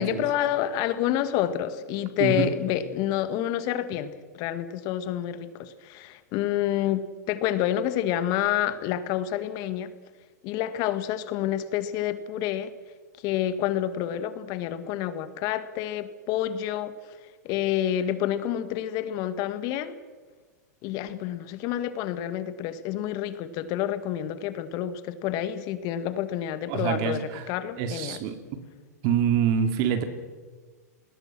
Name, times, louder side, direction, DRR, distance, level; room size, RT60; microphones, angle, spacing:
voice 1, 0.0-9.9 10.4-12.7 13.2-16.9 17.4-20.0 20.8-28.2, left 11 dB, 45° left, 12 dB, 1.9 m, -28 dB
voice 2, 2.2-2.5 26.7-27.5 27.8-28.4 29.0-30.0, right 8 dB, 45° right, 8 dB, 3.0 m, -25 dB
29.5 x 20.5 x 6.2 m, 1.4 s
hypercardioid pair, 115°, 9 cm